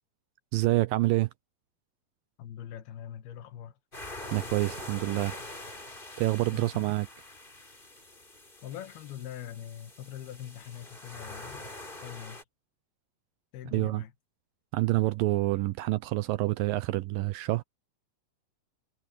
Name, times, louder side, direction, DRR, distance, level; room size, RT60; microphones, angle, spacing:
voice 1, 0.5-1.3 4.3-5.4 6.2-7.1 13.7-14.0 14.7-17.6, right 18 dB, 80° right, 2.1 m, -27 dB
voice 2, 2.4-3.8 6.5-6.9 8.6-11.6 12.0-12.4 13.5-14.1, left 10 dB, 80° left, 3.3 m, -42 dB
sound 1, 3.9-12.4, left 2 dB, 15° left, 3.2 m, -44 dB
omnidirectional pair, 4.4 m